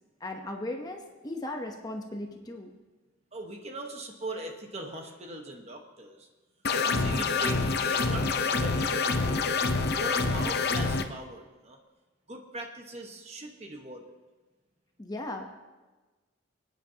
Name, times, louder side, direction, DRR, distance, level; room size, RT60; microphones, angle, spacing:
voice 1, 0.2-2.7 15.0-15.5, left 1 dB, 20° left, 3 dB, 0.9 m, -37 dB
voice 2, 3.3-6.3 6.8-9.6 9.9-11.8 12.3-14.1, right 2 dB, 35° right, 2 dB, 1.2 m, -40 dB
sound 1, 6.6-11.0, left 4 dB, 50° left, 0.7 m, -27 dB
25.0 x 9.4 x 2.9 m, 1.2 s
head